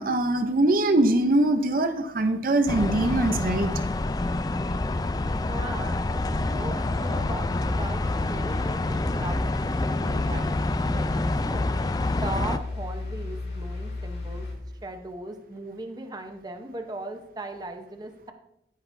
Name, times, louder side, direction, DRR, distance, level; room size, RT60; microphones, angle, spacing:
voice 1, 0.0-3.7, right 1 dB, 50° right, 7 dB, 0.7 m, -22 dB
sound 1, 2.7-12.6, left 2 dB, 20° left, 0.4 m, -27 dB
voice 2, 5.3-9.4 9.6-10.4 10.9-11.6 12.1-14.5 14.8-18.3, right 2 dB, 20° right, 5 dB, 0.9 m, -38 dB
sound 2, 5.7-7.7 8.1-9.5 9.9-11.5, equal, 90° right, 2.1 m, -41 dB
sound 3, 6.8-14.5, left 3 dB, 70° left, 3.9 m, -35 dB
13.0 x 10.5 x 2.7 m, 0.83 s
head